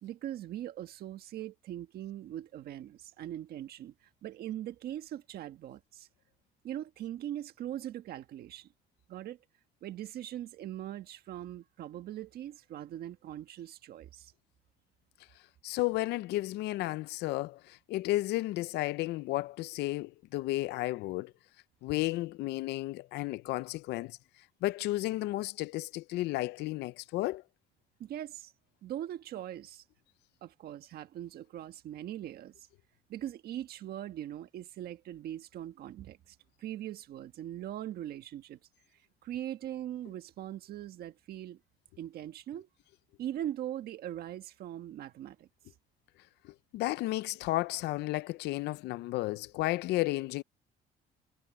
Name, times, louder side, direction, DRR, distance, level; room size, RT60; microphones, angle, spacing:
voice 1, 0.0-6.1 6.6-8.7 9.1-9.4 9.8-14.3 28.0-28.5 28.8-29.8 30.4-32.7 33.1-38.6 39.2-41.6 42.0-42.7 43.2-45.5, right 12 dB, 65° right, 1.5 m, -41 dB
voice 2, 15.6-21.3 21.8-24.2 24.6-27.4 46.4-50.4, left 18 dB, 80° left, 0.6 m, -33 dB
cardioid pair, 110°, 17 cm